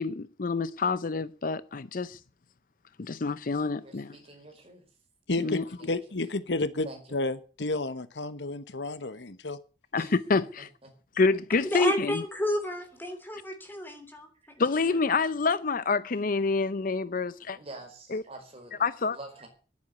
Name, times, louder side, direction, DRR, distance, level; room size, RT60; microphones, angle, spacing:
voice 1, 0.0-2.2 3.0-4.2 5.4-5.6 9.9-10.7 11.2-12.2 14.6-17.6 18.1-18.2 18.8-19.2, left 4 dB, 50° left, 0.6 m, -27 dB
voice 2, 3.8-4.8 5.3-5.5 5.8-6.0 6.8-7.2 9.9-10.9 17.5-18.8 19.1-19.5, right 2 dB, 35° right, 4.8 m, -47 dB
voice 3, 5.3-9.6, left 2 dB, 75° left, 1.2 m, -31 dB
voice 4, 11.6-14.6, equal, 10° left, 3.1 m, -31 dB
11.0 x 9.4 x 9.3 m
head